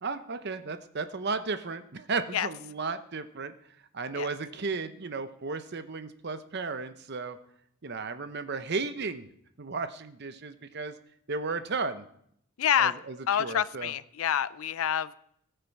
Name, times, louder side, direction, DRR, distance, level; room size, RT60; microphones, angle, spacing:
voice 1, 0.0-3.5 3.9-7.4 7.8-9.3 9.6-10.9 11.3-12.0 12.8-13.9, right 4 dB, 50° right, 10 dB, 0.8 m, -34 dB
voice 2, 12.6-12.9 13.3-15.1, left 9 dB, 75° left, 17 dB, 0.5 m, -27 dB
18.5 x 6.8 x 4.6 m, 0.70 s
head